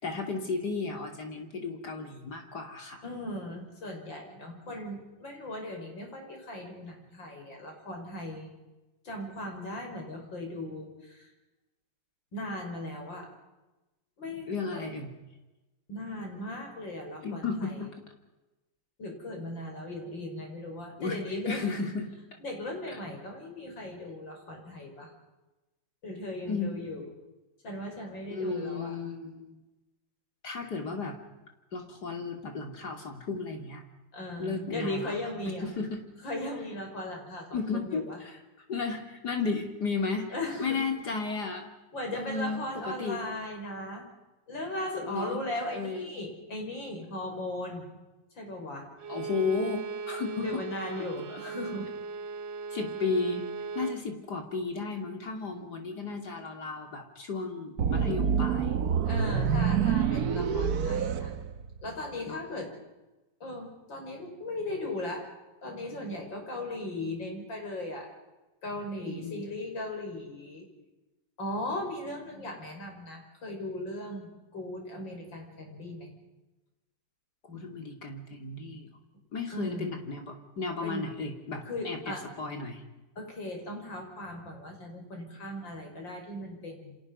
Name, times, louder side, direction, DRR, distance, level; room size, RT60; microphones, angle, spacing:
voice 1, 0.0-3.0 4.7-4.8 14.5-15.1 17.2-17.9 21.0-21.2 21.4-22.1 22.9-23.0 26.5-26.7 28.3-29.6 30.4-31.2 31.7-33.8 34.4-35.1 35.5-36.0 37.5-38.4 38.7-40.3 40.6-41.6 42.1-43.2 45.0-45.4 45.7-46.1 49.1-50.6 51.3-51.4 52.7-53.5 53.7-58.8 62.3-62.4 69.0-69.4 77.5-78.9 79.3-82.8, left 4 dB, 60° left, 3 dB, 3.3 m, -34 dB
voice 2, 3.0-8.6 9.0-11.3 12.3-13.3 14.2-14.8 15.9-17.9 19.0-21.7 22.4-25.1 26.0-27.1 27.6-29.0 34.1-35.7 36.2-38.2 40.3-40.8 41.9-44.1 44.5-47.9 48.3-48.9 50.4-51.9 59.0-61.4 61.8-62.7 63.4-65.3 65.6-68.1 68.6-70.7 71.4-76.1 79.5-80.0 80.8-81.1 81.6-82.3 83.2-87.0, left 1 dB, 80° left, 2 dB, 6.5 m, -37 dB
Bowed string instrument, 49.0-54.0, right 4 dB, 80° right, 1.8 m, -38 dB
sound 1, 57.8-62.0, right 7 dB, 60° right, 1.4 m, -27 dB
29.0 x 26.5 x 5.5 m, 1.1 s
omnidirectional pair, 2.0 m